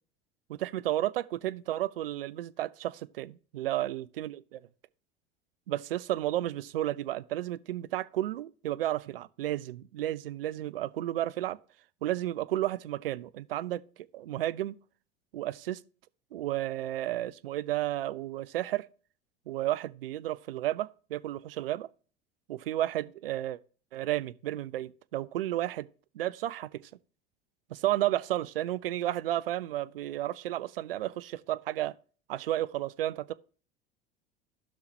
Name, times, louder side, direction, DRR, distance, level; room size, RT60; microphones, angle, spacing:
voice 1, 0.5-4.6 5.7-11.6 12.0-13.8 14.1-14.7 15.3-15.8 16.3-18.9 19.5-21.9 22.5-23.6 23.9-25.9 26.1-26.9 27.7-31.9 32.3-33.3, right 14 dB, 65° right, 0.5 m, -32 dB
16.0 x 5.6 x 2.8 m
figure-of-eight pair, 70°, 30 cm